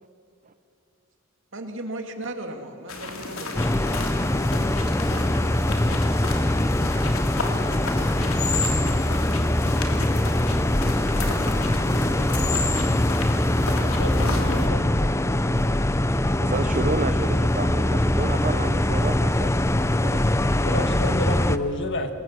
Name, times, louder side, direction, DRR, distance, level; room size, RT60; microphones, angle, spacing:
voice 1, 1.5-3.6 6.0-6.1, right 1 dB, 60° right, 4 dB, 2.6 m, -36 dB
sound 1, 2.9-14.7, left 3 dB, 90° left, 3.2 m, -33 dB
sound 2, 3.6-21.6, left 1 dB, 15° left, 0.6 m, -22 dB
voice 2, 14.0-14.9 20.6-22.1, left 1 dB, 60° left, 7 dB, 1.8 m, -29 dB
voice 3, 15.2-19.7 20.0-20.3, right 3 dB, 40° right, 9 dB, 0.7 m, -32 dB
27.5 x 21.5 x 7.6 m, 2.6 s
head